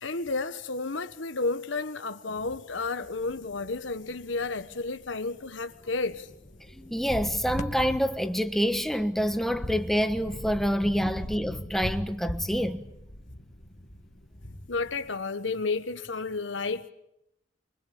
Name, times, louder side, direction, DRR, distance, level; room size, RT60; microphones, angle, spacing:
voice 1, 0.0-6.3 14.7-16.9, left 3 dB, 85° left, 1.3 m, -32 dB
sound 1, 3.0-15.1, left 1 dB, 40° left, 2.2 m, -40 dB
voice 2, 6.8-12.8, equal, ahead, 1.3 m, -27 dB
25.0 x 24.5 x 8.6 m
head